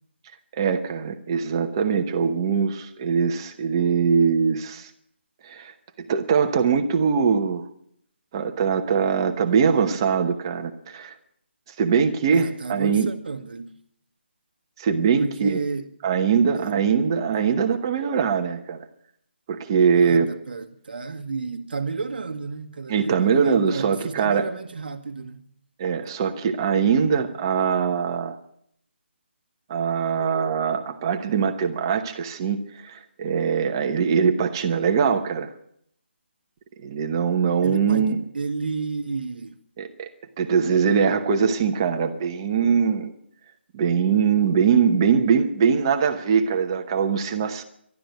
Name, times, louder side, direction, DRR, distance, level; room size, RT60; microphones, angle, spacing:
voice 1, 0.5-4.9 5.4-5.7 6.0-7.6 8.3-11.1 11.8-13.1 14.8-15.6 16.0-18.8 19.5-20.3 22.9-24.4 25.8-28.4 29.7-35.5 36.8-38.2 39.8-40.1 40.4-43.1 43.7-47.6, right 6 dB, 20° right, 0.9 m, -22 dB
voice 2, 12.3-13.8 15.2-15.9 16.5-16.8 19.9-25.5 37.6-39.6, right 4 dB, 50° right, 1.6 m, -32 dB
12.0 x 12.0 x 9.2 m
figure-of-eight pair, 170°, 6 cm